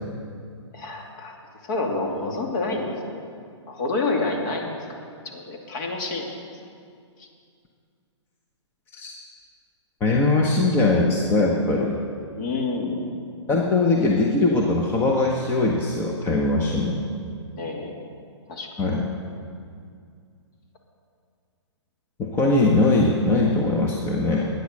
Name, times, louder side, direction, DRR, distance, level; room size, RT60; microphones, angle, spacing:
voice 1, 0.7-1.4 1.6-3.2 3.7-5.0 5.3-6.3 12.4-13.2 17.6-18.1 18.5-18.7, left 3 dB, 40° left, 1 dB, 2.4 m, -28 dB
voice 2, 10.0-12.0 13.5-17.1 18.8-19.0 22.2-24.5, left 2 dB, 15° left, -2 dB, 1.0 m, -21 dB
12.5 x 9.5 x 6.5 m, 2.3 s
hypercardioid pair, 145°, 15 cm